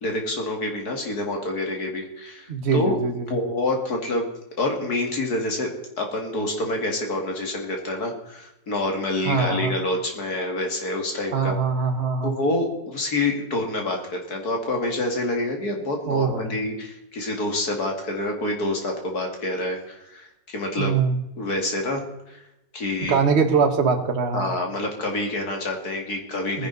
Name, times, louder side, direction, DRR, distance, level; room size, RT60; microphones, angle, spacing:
voice 1, 0.0-3.0 3.3-4.3 4.6-5.7 6.0-11.6 12.2-20.9 21.4-22.0 22.3-22.4 22.7-23.2 24.3-26.7, left 2 dB, 55° left, 2 dB, 2.7 m, -27 dB
voice 2, 2.5-3.3 9.3-9.7 11.3-12.3 16.1-16.6 20.8-21.2 23.0-24.5 26.6-26.7, right 5 dB, 40° right, 4 dB, 1.6 m, -22 dB
20.0 x 10.5 x 4.0 m, 0.89 s
omnidirectional pair, 1.9 m